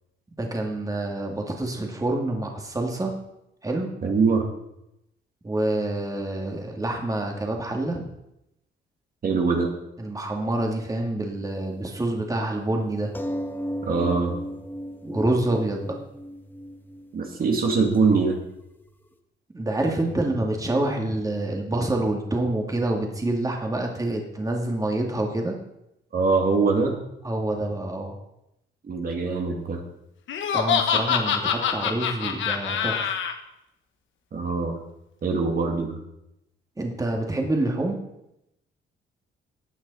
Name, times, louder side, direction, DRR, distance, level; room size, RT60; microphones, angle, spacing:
voice 1, 0.4-3.1 3.6-3.9 5.4-8.1 10.0-13.1 15.0-15.9 19.5-25.6 27.2-28.2 30.5-33.1 36.8-38.0, right 1 dB, 15° right, 1 dB, 2.2 m, -27 dB
voice 2, 4.0-4.4 9.2-9.7 13.8-14.4 17.1-18.4 26.1-27.0 28.8-29.8 34.3-34.8 35.2-36.0, right 4 dB, 45° right, 2 dB, 2.2 m, -23 dB
sound 1, 13.1-18.2 18.5-18.9, equal, 10° left, 1.3 m, -35 dB
Laughter, 30.3-33.3, left 7 dB, 75° left, 1.3 m, -24 dB
15.5 x 9.0 x 4.2 m, 0.84 s
cardioid pair, 90°, 20 cm